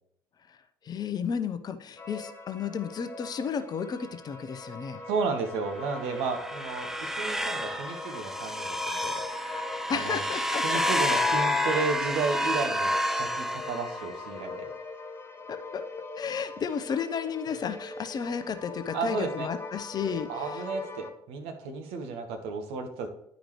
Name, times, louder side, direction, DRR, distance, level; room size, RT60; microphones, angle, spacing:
voice 1, 0.8-5.0 9.9-10.6 15.5-15.8 16.2-20.6, left 6 dB, 35° left, 10 dB, 0.7 m, -33 dB
sound 1, 2.0-21.1, left 3 dB, 20° left, 1.1 m, -42 dB
voice 2, 5.1-9.2 9.9-10.2 10.6-12.9 13.2-14.7 18.9-19.5 20.3-23.1, right 4 dB, 60° right, 5 dB, 1.1 m, -33 dB
sound 2, 5.9-14.2, left 1 dB, 5° right, 0.5 m, -29 dB
10.5 x 5.1 x 3.1 m, 0.77 s
figure-of-eight pair, 55°, 11 cm